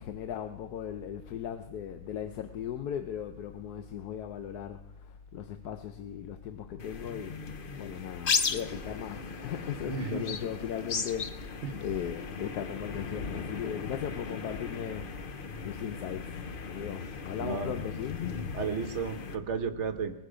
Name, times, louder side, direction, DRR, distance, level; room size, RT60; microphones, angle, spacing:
voice 1, 0.0-7.4 7.7-18.4, left 9 dB, 85° left, 1.3 m, -38 dB
sound 1, 6.8-19.4, left 5 dB, 45° left, 0.8 m, -36 dB
voice 2, 9.9-10.3 11.6-11.7 17.4-17.8 18.5-20.1, right 5 dB, 55° right, 1.1 m, -33 dB
20.0 x 10.0 x 5.0 m
omnidirectional pair, 1.6 m